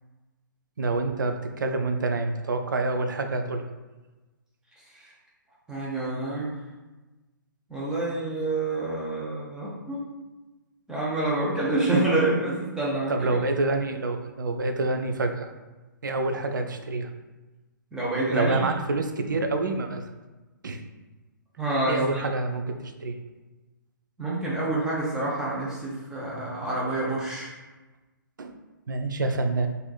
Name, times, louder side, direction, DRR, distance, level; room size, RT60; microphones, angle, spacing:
voice 1, 0.8-3.6 13.1-15.5 16.0-17.1 18.3-20.1 20.6-20.8 21.9-23.2 28.4-28.5 28.9-29.7, right 2 dB, 70° right, 6 dB, 0.4 m, -27 dB
voice 2, 5.7-6.5 7.7-10.0 10.9-13.4 17.9-18.6 21.6-22.2 24.2-27.5, right 2 dB, 5° right, -7 dB, 0.7 m, -27 dB
3.3 x 2.5 x 2.3 m, 1.2 s
figure-of-eight pair, 125°, 11 cm